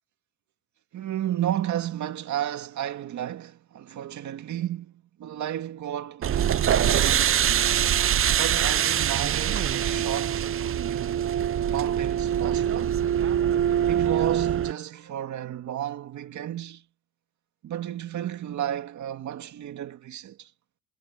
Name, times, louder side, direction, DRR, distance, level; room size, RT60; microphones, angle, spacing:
voice 1, 0.9-7.8 8.4-11.2 11.7-13.0 13.7-16.8 17.6-20.5, right 11 dB, 70° right, 2.1 m, -33 dB
sound 1, 6.2-14.7, right 10 dB, 45° right, 0.7 m, -24 dB
cardioid pair, 90°, 30 cm